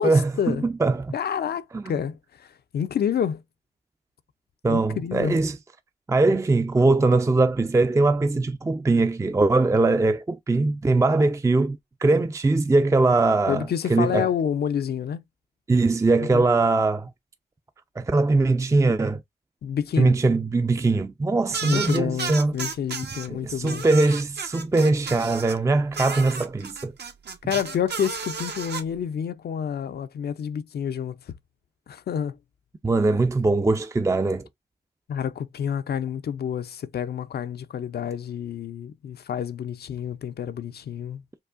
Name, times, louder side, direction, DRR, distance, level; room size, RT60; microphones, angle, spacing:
voice 1, 0.0-1.1 1.7-1.9 4.6-5.6 6.1-14.3 15.7-17.1 18.0-19.2 20.0-22.6 23.3-26.9 32.8-34.5, right 3 dB, 15° right, 0.4 m, -21 dB
voice 2, 1.1-3.4 4.7-5.4 13.5-15.2 16.2-16.4 19.6-20.2 21.6-23.9 27.4-31.2 31.9-32.4 33.1-33.2 35.1-41.2, left 8 dB, 60° left, 0.5 m, -28 dB
sound 1, 21.5-23.3 23.6-25.6 25.9-28.8, right 5 dB, 65° right, 1.0 m, -33 dB
4.6 x 2.4 x 2.4 m
supercardioid pair, 45°, 18 cm